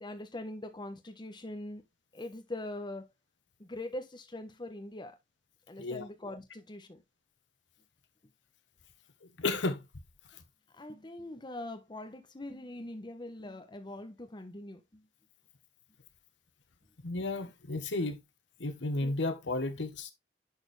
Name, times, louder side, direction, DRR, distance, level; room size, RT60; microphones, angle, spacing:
voice 1, 0.0-1.8 2.1-3.0 3.6-5.2 5.7-7.0 10.7-15.1, left 1 dB, 25° left, 1.0 m, -42 dB
voice 2, 9.4-9.8 17.0-18.2 18.6-20.1, left 2 dB, 75° left, 1.1 m, -33 dB
10.5 x 4.4 x 3.3 m
head